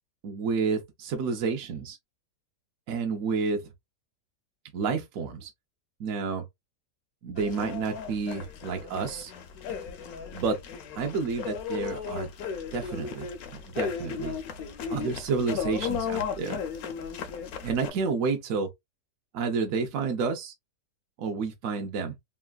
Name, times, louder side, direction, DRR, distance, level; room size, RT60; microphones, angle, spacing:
voice 1, 0.2-2.0 2.9-3.7 4.7-5.5 6.0-6.5 7.2-9.3 10.3-10.6 11.0-12.3 12.7-14.3 14.9-16.6 17.6-18.7 19.3-20.5 21.2-22.1, right 5 dB, 70° right, 0.8 m, -30 dB
sound 1, 7.4-17.9, left 7 dB, 70° left, 0.9 m, -35 dB
3.1 x 2.4 x 2.3 m
omnidirectional pair, 1.9 m